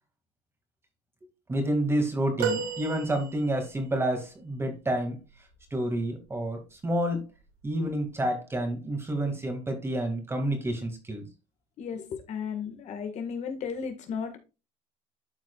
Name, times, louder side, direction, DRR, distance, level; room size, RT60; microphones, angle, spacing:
voice 1, 1.5-5.2 5.7-7.2 7.6-11.2, right 1 dB, 15° right, 5 dB, 2.1 m, -29 dB
sound 1, 2.4-3.8 6.2-6.4 7.7-7.8, right 6 dB, 85° right, 2.2 m, -32 dB
voice 2, 11.8-14.4, left 6 dB, 55° left, 6 dB, 1.6 m, -34 dB
12.5 x 4.6 x 2.3 m, 0.29 s
cardioid pair, 120°, 14 cm